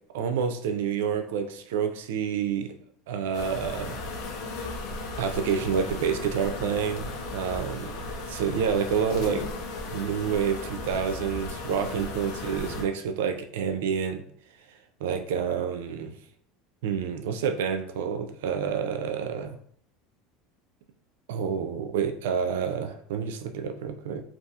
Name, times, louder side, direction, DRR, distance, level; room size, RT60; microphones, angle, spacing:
voice 1, 0.1-2.7 3.1-4.0 5.2-7.9 8.3-9.5 9.9-14.2 15.0-16.1 16.8-19.6 21.3-24.2, right 7 dB, 80° right, 8 dB, 0.3 m, -28 dB
sound 1, 3.3-12.8, left 3 dB, 75° left, 0.6 m, -36 dB
2.6 x 2.3 x 2.4 m, 0.63 s
supercardioid pair, 110°, 0 cm